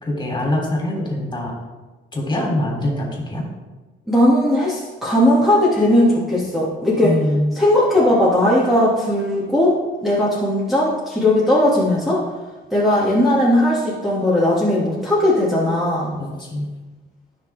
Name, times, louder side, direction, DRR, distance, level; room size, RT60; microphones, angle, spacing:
voice 1, 0.0-1.5 2.1-3.4 7.0-7.5 16.2-16.7, left 1 dB, 25° left, -2 dB, 3.6 m, -23 dB
voice 2, 4.1-7.1 7.6-9.8 10.0-12.2 12.7-16.1, left 1 dB, ahead, -8 dB, 2.5 m, -17 dB
15.0 x 6.3 x 3.7 m, 1.2 s
cardioid pair, 90°, 20 cm